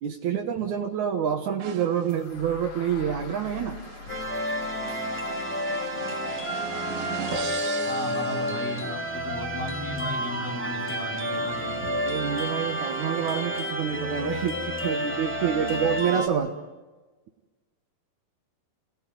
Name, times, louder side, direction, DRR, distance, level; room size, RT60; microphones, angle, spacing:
voice 1, 0.0-3.8 11.8-16.5, right 8 dB, 75° right, 3 dB, 1.7 m, -27 dB
sound 1, 1.6-9.2, right 8 dB, 60° right, 3.1 m, -40 dB
sound 2, 2.1-10.0, left 7 dB, 65° left, 3.3 m, -46 dB
sound 3, 4.1-16.3, equal, 10° left, 0.5 m, -30 dB
voice 2, 7.9-11.9, left 1 dB, 25° left, 1 dB, 3.0 m, -35 dB
27.5 x 18.5 x 9.4 m, 1.3 s
omnidirectional pair, 5.4 m